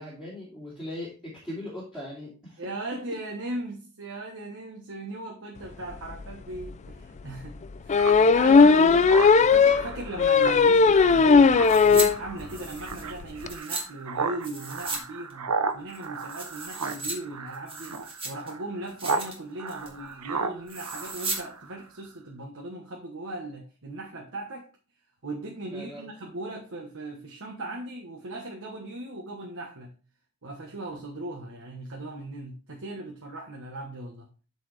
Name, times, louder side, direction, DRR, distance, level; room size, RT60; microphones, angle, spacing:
voice 1, 0.0-2.6 8.4-9.3 25.7-26.0, left 1 dB, 5° right, -10 dB, 2.6 m, -38 dB
voice 2, 2.6-9.0 9.4-24.7 25.2-29.9 30.4-34.3, right 2 dB, 60° right, 0 dB, 1.2 m, -38 dB
sound 1, 6.1-6.2 6.6-6.7 7.9-12.2 12.6-12.7 12.9-13.0 13.2-13.5, left 5 dB, 30° left, 0.4 m, -17 dB
Speech synthesizer, 8.0-19.3 19.6-21.8, right 4 dB, 85° right, 0.9 m, -35 dB
sound 2, 11.6-12.1 12.4-13.8 14.4-15.0 15.3-15.4 15.9-17.1 17.5-18.5 18.9-19.4 19.7-20.0 20.7-21.4 21.7-21.8, right 3 dB, 25° right, 1.8 m, -35 dB
12.0 x 4.2 x 3.3 m, 0.36 s
head